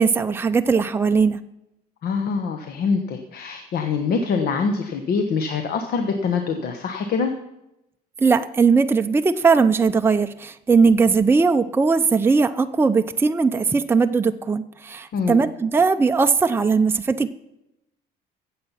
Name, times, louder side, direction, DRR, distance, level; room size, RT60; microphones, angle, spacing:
voice 1, 0.0-1.4 8.2-17.3, right 4 dB, 15° right, 8 dB, 0.5 m, -19 dB
voice 2, 2.0-7.3 15.1-15.4, left 5 dB, 65° left, 6 dB, 1.2 m, -24 dB
15.0 x 7.6 x 5.7 m, 0.88 s
cardioid pair, 110°, 17 cm